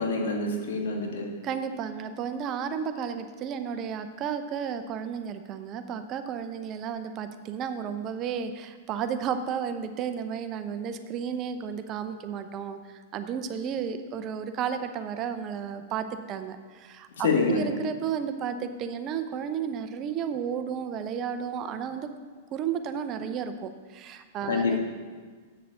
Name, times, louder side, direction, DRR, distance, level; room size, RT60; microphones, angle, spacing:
voice 1, 0.0-1.3 17.2-17.6 24.5-24.8, left 4 dB, 70° left, 1 dB, 1.8 m, -26 dB
voice 2, 1.4-22.1 22.5-24.8, right 7 dB, 35° right, 9 dB, 0.7 m, -33 dB
8.2 x 6.8 x 6.4 m, 1.5 s
hypercardioid pair, 105°, 0 cm